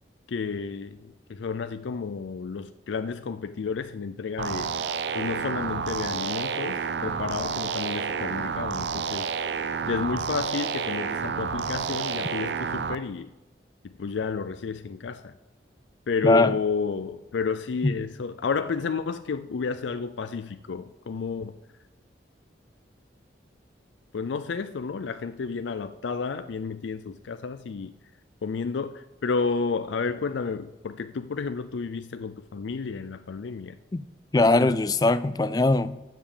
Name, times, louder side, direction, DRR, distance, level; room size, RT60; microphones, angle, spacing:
voice 1, 0.3-4.8 5.1-9.3 9.9-13.3 13.8-15.4 16.1-21.6 24.1-27.9 28.4-33.8 34.4-34.8, left 5 dB, 85° left, 0.4 m, -31 dB
sound 1, 4.4-12.9, right 6 dB, 70° right, 0.5 m, -30 dB
voice 2, 16.2-16.6 17.8-17.9 33.9-34.0 34.3-36.0, left 2 dB, 20° left, 0.3 m, -21 dB
12.5 x 7.1 x 7.2 m
head